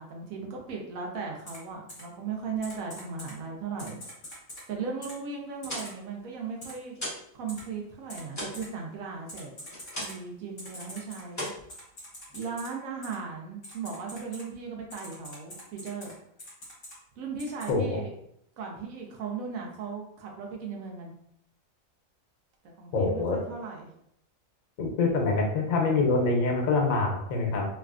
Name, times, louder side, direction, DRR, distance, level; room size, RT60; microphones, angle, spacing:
voice 1, 0.0-4.0 4.7-6.9 7.3-9.5 10.0-11.5 12.3-16.1 17.2-18.1 18.6-21.1 22.6-23.9, right 5 dB, 85° right, 0 dB, 1.1 m, -37 dB
Typing, 1.5-1.6 1.9-2.0 2.6-3.3 3.8-4.6 5.0-5.1 5.6-5.9 6.6-6.7 7.5-7.6 8.1-8.2 8.5-8.6 9.3-10.1 10.6-12.7 13.0-13.2 13.6-14.4 14.9-16.1 16.4-16.9 17.4-17.7, equal, 40° left, 1.2 m, -44 dB
sound 1, 5.4-7.3 7.6-10.4 10.7-11.0 11.3-12.4, left 1 dB, 15° left, 0.7 m, -39 dB
voice 2, 22.9-23.4 24.8-27.6, left 3 dB, 85° left, 1 dB, 1.1 m, -25 dB
3.2 x 2.3 x 2.4 m, 0.72 s
omnidirectional pair, 1.4 m